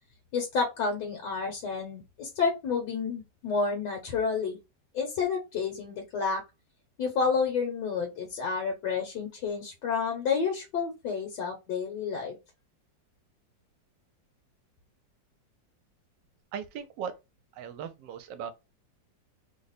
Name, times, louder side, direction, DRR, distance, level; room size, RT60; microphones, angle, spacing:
voice 1, 0.3-4.6 4.9-6.4 7.0-12.4, left 5 dB, 70° left, 1.4 m, -30 dB
voice 2, 16.5-17.1 17.5-18.5, right 7 dB, 75° right, 1.2 m, -38 dB
3.2 x 2.1 x 4.0 m
omnidirectional pair, 2.0 m